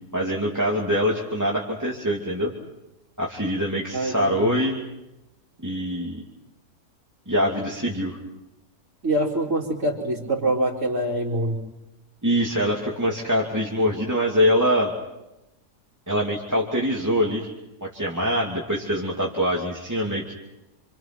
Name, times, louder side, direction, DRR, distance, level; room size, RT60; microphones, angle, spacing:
voice 1, 0.1-2.5 3.2-4.8 5.6-6.2 7.3-8.2 12.2-14.9 16.1-17.5 17.8-20.3, equal, 10° right, -2 dB, 2.7 m, -24 dB
voice 2, 3.9-4.5 9.0-11.6, right 1 dB, 50° right, -5 dB, 4.2 m, -25 dB
29.5 x 26.0 x 6.2 m, 0.94 s
omnidirectional pair, 1.7 m